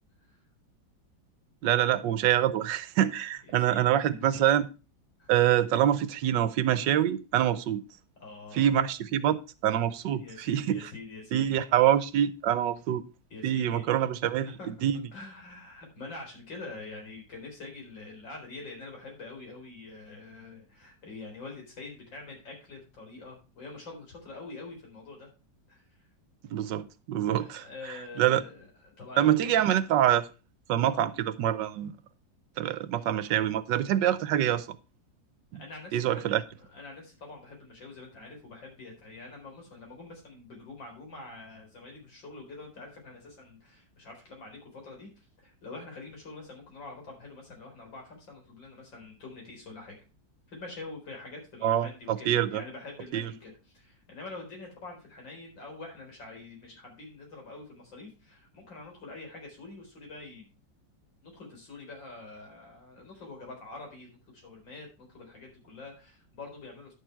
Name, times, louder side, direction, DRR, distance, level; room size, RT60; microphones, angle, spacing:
voice 1, 1.6-4.7 5.3-7.8 8.5-10.9 11.3-13.0 13.4-15.0 26.5-27.6 28.2-28.4 29.2-30.3 30.7-31.9 32.6-34.7 35.5-35.6 35.9-36.4 51.6-52.6 53.1-53.3, right 11 dB, 80° right, 1.4 m, -25 dB
voice 2, 3.5-4.0 4.3-4.4 5.2-5.3 8.2-8.7 10.2-11.6 13.3-13.8 14.2-14.7 15.1-25.3 25.7-26.1 27.3-29.8 30.9-31.1 35.5-50.0 50.5-60.5 61.2-66.9, left 3 dB, 90° left, 4.9 m, -45 dB
10.5 x 6.6 x 4.5 m
omnidirectional pair, 2.0 m